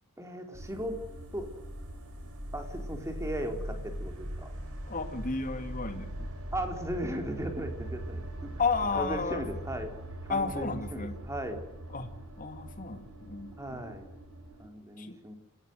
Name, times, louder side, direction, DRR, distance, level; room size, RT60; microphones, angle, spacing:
voice 1, 0.2-1.0 1.3-1.5 2.5-4.5 6.5-8.5 8.9-11.6 13.6-14.1 14.6-15.4, equal, 15° right, 4 dB, 4.0 m, -37 dB
sound 1, 0.5-14.7, right 1 dB, 90° right, 5.4 m, -41 dB
voice 2, 4.8-6.3 8.6-9.4 10.3-11.2 11.9-12.1 12.4-14.0 15.0-15.2, left 4 dB, 40° left, 7 dB, 2.6 m, -33 dB
28.0 x 15.5 x 8.0 m, 0.91 s
head